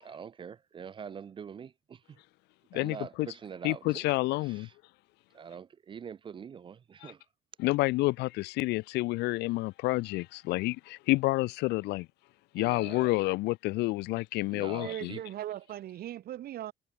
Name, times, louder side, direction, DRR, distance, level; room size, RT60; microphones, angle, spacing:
voice 1, 0.0-2.0 2.7-4.0 5.3-7.2 12.6-13.2 14.5-15.2, right 7 dB, 30° right, 0.4 m, -44 dB
voice 2, 2.7-3.3 3.6-4.7 7.0-7.1 7.6-12.1 12.5-15.1, left 21 dB, 80° left, 0.4 m, -29 dB
voice 3, 14.8-16.7, right 12 dB, 65° right, 2.5 m, -39 dB
cardioid pair, 110°, 17 cm